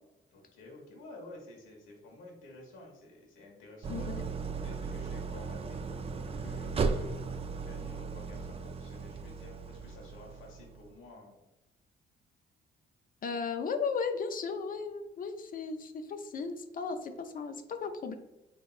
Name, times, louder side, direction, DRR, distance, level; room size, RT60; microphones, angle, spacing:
voice 1, 0.3-5.8 6.2-11.4, left 2 dB, 85° left, -1 dB, 1.1 m, -51 dB
Idling, 3.8-10.9, right 4 dB, 30° right, 0.4 m, -36 dB
voice 2, 3.9-4.2 13.2-18.2, left 5 dB, 45° left, 7 dB, 0.4 m, -35 dB
3.7 x 3.4 x 2.4 m, 0.96 s
cardioid pair, 90°, 20 cm